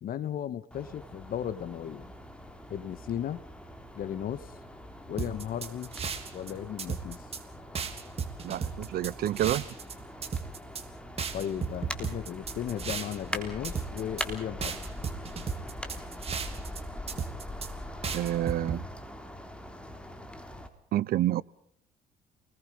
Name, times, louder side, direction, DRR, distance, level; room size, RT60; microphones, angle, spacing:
voice 1, 0.0-2.1 2.7-3.4 3.9-4.5 5.1-5.9 6.3-7.3 11.3-14.8, left 10 dB, 60° left, 15 dB, 1.8 m, -35 dB
sound 1, 0.7-20.7, left 1 dB, 5° left, 3.4 m, -42 dB
sound 2, 5.2-6.5 6.8-7.4 7.7-9.9 10.2-10.8 11.2-13.4 13.6-14.3 14.6-16.8 17.1-17.7 18.0-18.8, right 6 dB, 35° right, 3.3 m, -34 dB
voice 2, 8.4-9.7 18.1-18.8 20.9-21.4, right 13 dB, 65° right, 21 dB, 0.9 m, -28 dB
29.0 x 21.0 x 5.4 m, 0.65 s
cardioid pair, 110°, 17 cm